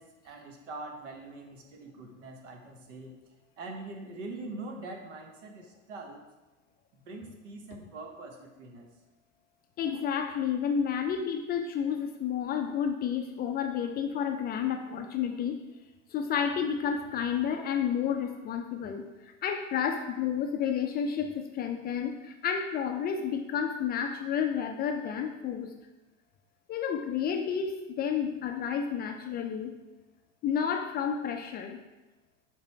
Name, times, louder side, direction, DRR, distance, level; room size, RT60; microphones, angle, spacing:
voice 1, 0.0-3.2 3.6-6.3 6.9-8.9, right 2 dB, 65° right, 3 dB, 1.2 m, -43 dB
voice 2, 9.8-15.6 16.1-25.7 26.7-29.7 30.4-31.8, left 7 dB, 25° left, 4 dB, 0.4 m, -31 dB
6.6 x 3.4 x 4.5 m, 1.1 s
hypercardioid pair, 90°, 40 cm